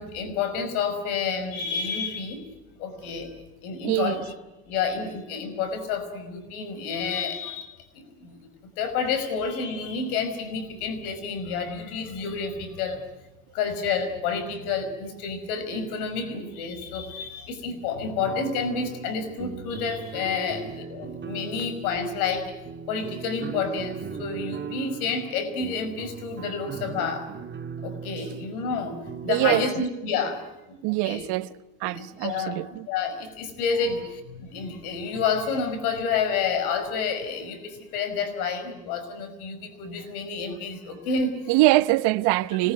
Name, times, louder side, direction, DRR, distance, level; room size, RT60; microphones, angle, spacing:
voice 1, 0.0-2.5 2.8-3.3 3.6-4.3 4.7-8.5 8.8-13.0 13.5-22.6 22.9-27.3 27.8-29.0 29.2-30.4 30.7-31.3 31.8-32.6 32.9-41.6, left 5 dB, 85° left, 5.5 m, -29 dB
voice 2, 3.8-4.2 29.3-29.8 30.8-31.5 31.8-32.9 41.5-42.7, right 18 dB, 65° right, 1.1 m, -23 dB
sound 1, 18.2-29.7, right 6 dB, 25° right, 1.7 m, -38 dB
25.5 x 20.0 x 9.4 m
supercardioid pair, 90°, 43 cm